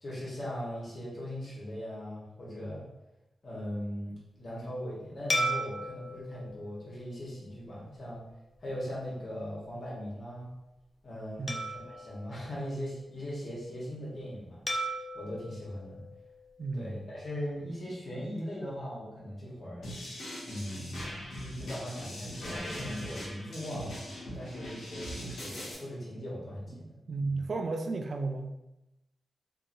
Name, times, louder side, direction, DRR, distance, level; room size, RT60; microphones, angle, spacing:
voice 1, 0.0-2.8 3.4-8.2 8.6-10.5 11.0-11.6 11.9-14.9 15.1-16.0 16.7-19.9 20.4-24.0 24.3-27.0 27.2-27.5, equal, 55° left, -6 dB, 1.3 m, -39 dB
sound 1, 5.3-8.0 8.6-8.7 11.5-13.3 14.7-17.0, equal, 40° left, 0.5 m, -37 dB
voice 2, 16.6-17.0 27.1-28.5, right 3 dB, 60° right, 5 dB, 0.3 m, -33 dB
sound 2, 19.8-25.7, equal, 80° left, 1.1 m, -41 dB
2.8 x 2.6 x 2.6 m, 0.93 s
cardioid pair, 55°, 0 cm